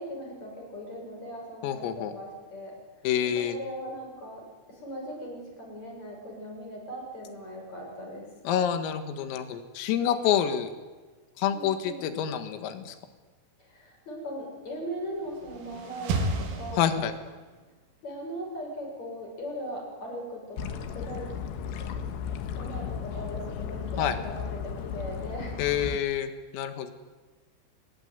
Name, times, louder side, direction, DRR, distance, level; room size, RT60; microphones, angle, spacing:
voice 1, 0.0-2.7 3.2-8.3 11.5-12.0 13.6-16.9 18.0-21.3 22.0-22.1 22.5-25.6, equal, 35° left, -1 dB, 8.0 m, -39 dB
voice 2, 1.6-2.1 3.0-3.6 8.5-10.7 11.4-13.0 16.8-17.1 24.0-24.2 25.6-26.9, left 9 dB, 90° left, 8 dB, 4.4 m, -27 dB
sound 1, 15.1-17.5, right 2 dB, 75° right, 5.1 m, -32 dB
atmo water traffic, 20.6-26.0, left 7 dB, 70° left, 3.4 m, -35 dB
27.0 x 20.0 x 9.7 m, 1.3 s
omnidirectional pair, 5.9 m